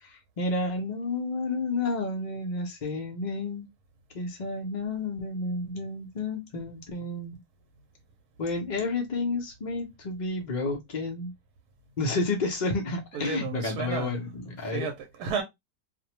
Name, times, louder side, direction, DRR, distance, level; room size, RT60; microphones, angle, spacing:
voice 1, 0.0-3.7 4.1-7.3 8.4-11.3 12.0-14.9, left 3 dB, 85° left, 0.4 m, -31 dB
voice 2, 13.1-14.2 14.6-15.4, right 5 dB, 85° right, 1.1 m, -32 dB
2.6 x 2.0 x 2.8 m
omnidirectional pair, 1.6 m